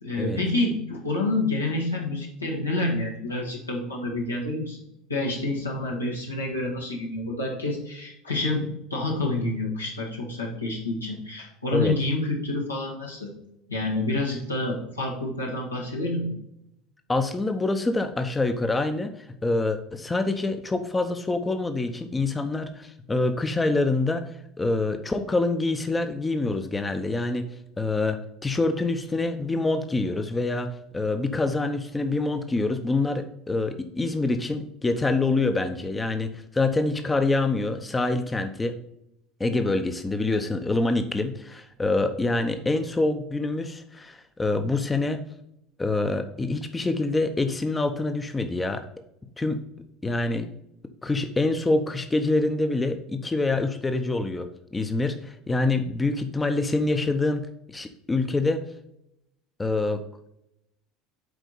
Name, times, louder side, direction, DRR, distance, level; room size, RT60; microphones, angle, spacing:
voice 1, 0.0-4.8 5.1-13.3 13.7-16.3, left 2 dB, 85° left, -2 dB, 1.7 m, -28 dB
voice 2, 17.1-19.1 19.4-24.3 24.6-27.5 27.8-38.8 39.4-45.2 45.8-48.8 49.4-49.6 50.0-50.5 51.0-58.7 59.6-60.0, left 2 dB, 15° left, 8 dB, 0.7 m, -26 dB
7.9 x 4.5 x 4.0 m, 0.79 s
figure-of-eight pair, 70°, 0 cm